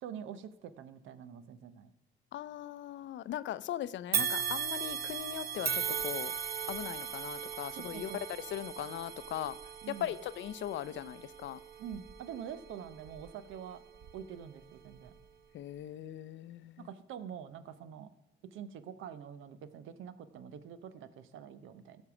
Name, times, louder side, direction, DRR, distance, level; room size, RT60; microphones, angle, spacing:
voice 1, 0.0-1.9 7.8-8.2 8.5-8.6 9.8-10.1 11.8-13.8 14.1-15.1 16.8-18.1 18.5-22.0, right 8 dB, 85° right, 0.7 m, -46 dB
voice 2, 2.3-6.3 6.7-9.6 9.9-11.6 15.5-16.9, left 12 dB, 70° left, 0.5 m, -39 dB
sound 1, 4.1-13.4 14.0-14.1 15.1-15.2, right 7 dB, 50° right, 0.8 m, -38 dB
14.5 x 5.4 x 6.0 m
cardioid pair, 90°, 20 cm